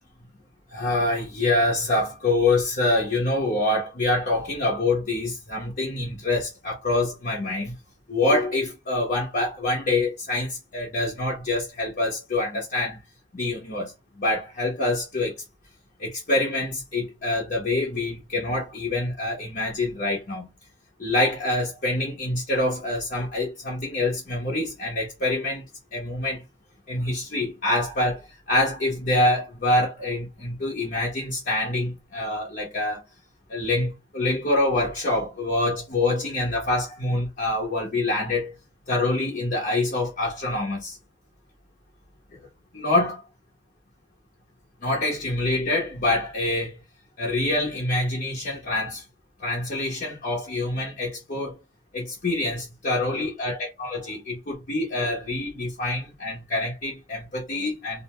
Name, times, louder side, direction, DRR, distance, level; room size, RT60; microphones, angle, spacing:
voice 1, 0.7-7.7 8.1-13.0 13.3-15.3 16.0-20.5 21.0-25.6 25.9-26.4 26.9-33.0 33.5-38.5 38.9-41.0 42.7-43.2 44.8-46.8 47.2-49.0 49.4-51.6 51.9-58.0, left 2 dB, 50° left, 0.8 m, -26 dB
2.6 x 2.1 x 2.9 m
head